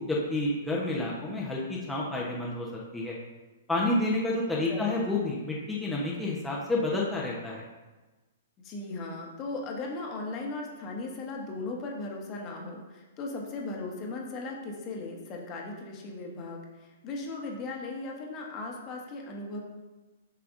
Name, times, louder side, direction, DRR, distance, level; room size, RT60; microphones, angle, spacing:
voice 1, 0.0-3.2 3.7-7.6, left 2 dB, 5° left, -5 dB, 1.0 m, -29 dB
voice 2, 4.7-5.0 8.6-19.6, left 2 dB, 30° left, 0 dB, 1.3 m, -37 dB
7.2 x 5.7 x 2.6 m, 1.2 s
figure-of-eight pair, 115°, 0 cm